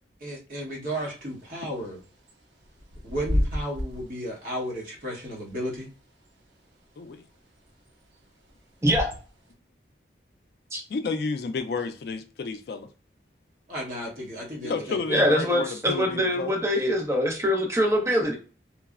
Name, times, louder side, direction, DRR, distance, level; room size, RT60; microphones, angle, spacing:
voice 1, 0.2-2.0 3.0-5.9 13.7-15.2, equal, 50° right, 1.0 m, -34 dB
Bird / Wind, 0.8-9.5, left 1 dB, 80° right, 0.6 m, -34 dB
voice 2, 8.8-9.1 10.7-10.8 15.1-18.4, equal, 15° right, 0.5 m, -23 dB
voice 3, 10.9-12.9 14.6-16.5, left 4 dB, 60° left, 0.3 m, -31 dB
3.1 x 2.0 x 2.3 m
head